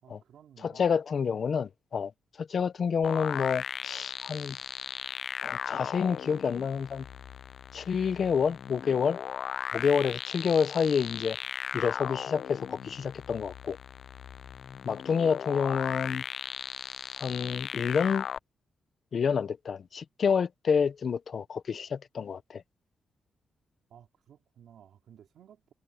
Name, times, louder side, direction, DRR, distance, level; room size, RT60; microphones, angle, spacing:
voice 1, 0.0-0.9 23.9-25.7, right 9 dB, 75° right, 2.9 m, -56 dB
voice 2, 0.6-2.1 2.4-4.6 5.4-7.0 7.7-9.2 9.7-11.4 11.7-13.8 14.8-16.2 17.2-18.3 19.1-22.6, left 6 dB, 45° left, 0.8 m, -28 dB
sound 1, 3.0-18.4, left 9 dB, 65° left, 0.3 m, -37 dB
wide cardioid pair, 150°, 0 cm